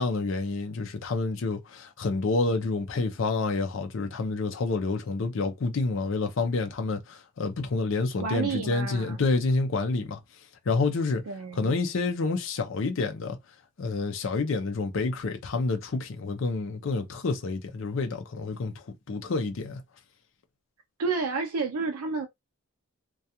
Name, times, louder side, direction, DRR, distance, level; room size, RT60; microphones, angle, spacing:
voice 1, 0.0-10.2 10.7-11.2 11.5-13.4 13.8-19.8, left 3 dB, 65° left, 0.5 m, -28 dB
voice 2, 8.2-9.2 11.3-11.7 21.0-22.3, right 4 dB, 90° right, 0.4 m, -30 dB
2.3 x 2.2 x 2.8 m
head